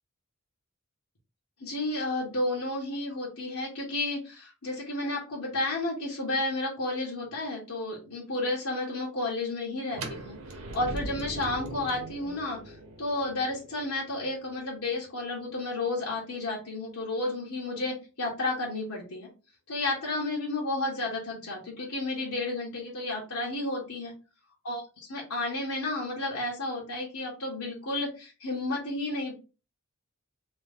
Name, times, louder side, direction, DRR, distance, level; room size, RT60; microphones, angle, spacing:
voice 1, 1.6-10.4 10.7-19.3 19.7-24.1 24.6-29.3, left 2 dB, 80° left, -4 dB, 1.3 m, -32 dB
sound 1, 9.9-15.8, right 1 dB, 70° right, 0.9 m, -41 dB
3.0 x 3.0 x 3.5 m, 0.32 s
head